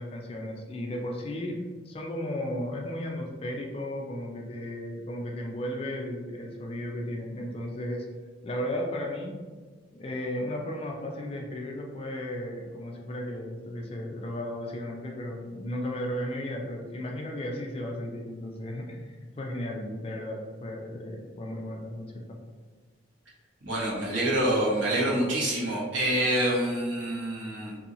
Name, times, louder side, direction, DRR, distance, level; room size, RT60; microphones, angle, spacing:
voice 1, 0.0-8.1 8.4-9.4 9.9-22.2, left 1 dB, 30° left, 1 dB, 0.3 m, -35 dB
voice 2, 23.6-27.7, right 1 dB, 80° right, -6 dB, 1.1 m, -26 dB
2.7 x 2.7 x 2.5 m, 1.4 s
head